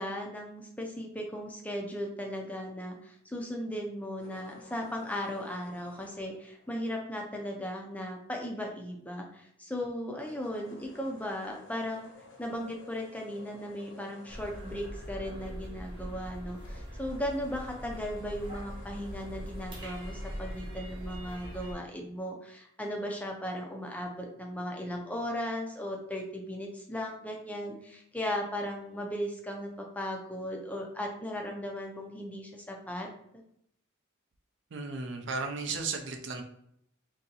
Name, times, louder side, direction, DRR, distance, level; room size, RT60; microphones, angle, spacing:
voice 1, 0.0-12.1 12.4-33.1, equal, 5° left, 0 dB, 0.5 m, -37 dB
sound 1, 4.2-7.6 10.1-16.2 16.6-20.8, left 2 dB, 65° left, 1.0 m, -56 dB
sound 2, 14.3-21.8, equal, 25° right, 1.0 m, -42 dB
voice 2, 34.7-36.4, right 4 dB, 60° right, 4 dB, 0.5 m, -34 dB
2.7 x 2.7 x 3.9 m, 0.72 s
head